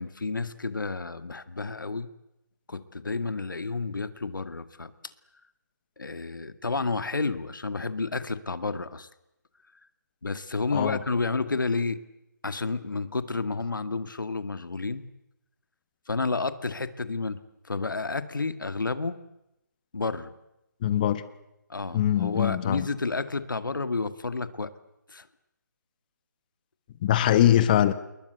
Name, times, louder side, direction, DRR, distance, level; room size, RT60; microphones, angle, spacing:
voice 1, 0.0-2.1 2.7-5.1 6.0-9.1 10.2-12.0 12.4-15.1 16.1-19.2 19.9-20.3 21.7-24.7 25.1-25.3, left 3 dB, 85° left, 11 dB, 2.1 m, -31 dB
voice 2, 20.8-21.2 21.9-22.9 27.0-27.9, left 11 dB, 25° left, 13 dB, 1.5 m, -22 dB
28.5 x 21.0 x 8.2 m, 0.89 s
hypercardioid pair, 160°, 10 cm